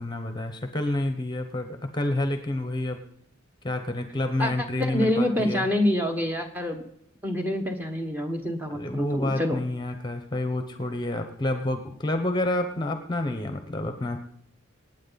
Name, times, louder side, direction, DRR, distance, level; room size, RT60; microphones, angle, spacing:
voice 1, 0.0-3.0 3.6-5.7 8.7-14.2, left 1 dB, 20° left, 7 dB, 0.9 m, -29 dB
voice 2, 4.8-6.8 7.2-9.6, left 1 dB, 10° right, 4 dB, 1.3 m, -26 dB
26.0 x 9.1 x 4.1 m, 0.70 s
head